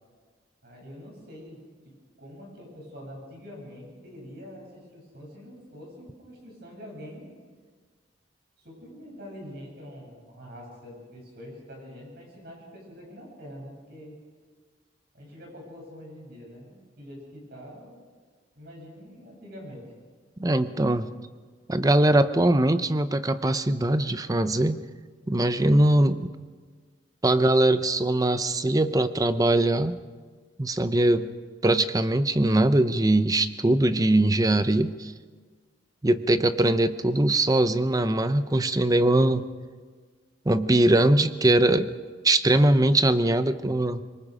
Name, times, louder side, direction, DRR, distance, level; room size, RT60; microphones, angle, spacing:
voice 1, 0.6-7.3 8.6-14.2 15.1-18.0 18.6-19.9, equal, 60° right, 0 dB, 7.7 m, -45 dB
voice 2, 20.4-21.1 21.7-24.8 25.3-26.3 27.2-30.0 30.6-31.3 31.6-35.1 36.0-39.5 40.5-41.9 42.2-44.0, right 1 dB, 20° right, 12 dB, 0.7 m, -21 dB
25.0 x 22.5 x 5.0 m, 1.5 s
head